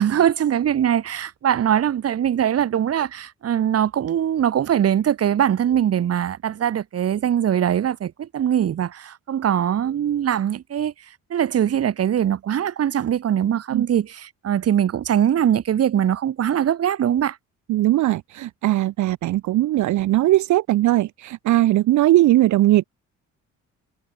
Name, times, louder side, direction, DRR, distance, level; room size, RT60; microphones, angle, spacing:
voice 1, 0.0-10.9 11.3-17.4, right 10 dB, 55° right, 1.3 m, -21 dB
voice 2, 17.7-22.8, right 15 dB, 75° right, 0.8 m, -19 dB
cardioid pair, 90°, 30 cm